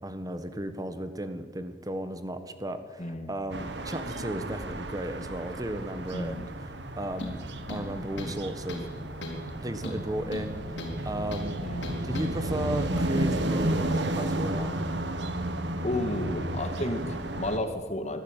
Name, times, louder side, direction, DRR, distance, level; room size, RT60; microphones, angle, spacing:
voice 1, 0.0-6.5 7.0-7.4 7.7-8.8 9.5-10.8 11.0-11.5 12.0-14.8, right 1 dB, 20° right, 10 dB, 1.5 m, -34 dB
voice 2, 3.0-3.3 6.1-6.5 11.6-12.0 15.8-18.2, left 1 dB, 40° left, 7 dB, 2.2 m, -32 dB
sound 1, 3.5-17.6, right 1 dB, 80° right, 1.7 m, -32 dB
sound 2, 7.2-7.4 7.7-8.4 8.7-8.9 9.2-9.5 9.8-11.0 11.3-11.5 11.8-12.3, left 1 dB, 80° left, 4.0 m, -37 dB
21.5 x 14.0 x 9.1 m, 1.5 s
head